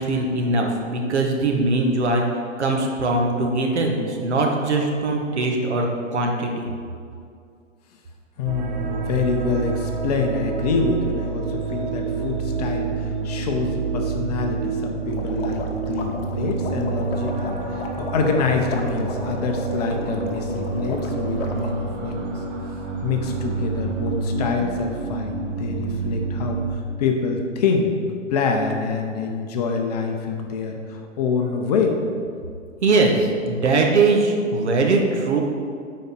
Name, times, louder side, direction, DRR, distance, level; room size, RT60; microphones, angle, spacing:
voice 1, 0.0-2.2 2.6-5.9 6.1-6.7 32.8-35.4, right 3 dB, 60° right, 1 dB, 1.3 m, -21 dB
voice 2, 8.4-22.3 23.0-27.9 28.3-32.0, left 5 dB, 30° left, 3 dB, 0.7 m, -26 dB
sound 1, 8.4-26.8, right 5 dB, 35° right, 0.8 m, -28 dB
sound 2, 15.1-21.7, left 3 dB, 50° left, 1.0 m, -35 dB
10.0 x 4.2 x 4.2 m, 2.3 s
figure-of-eight pair, 115°, 38 cm